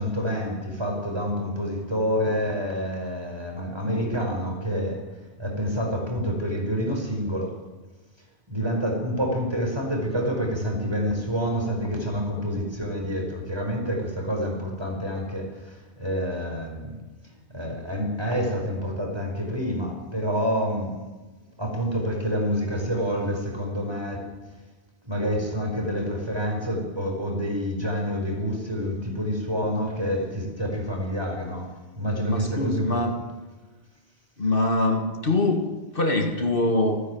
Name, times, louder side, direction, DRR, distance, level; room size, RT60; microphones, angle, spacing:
voice 1, 0.0-5.0 5.4-7.6 8.5-17.0 17.5-21.0 21.6-24.3 25.0-31.7 32.0-33.0, equal, 25° right, 1 dB, 5.1 m, -28 dB
voice 2, 32.2-33.2 34.4-37.0, left 2 dB, 55° left, 4 dB, 2.1 m, -24 dB
28.0 x 10.0 x 9.3 m, 1.2 s
omnidirectional pair, 1.1 m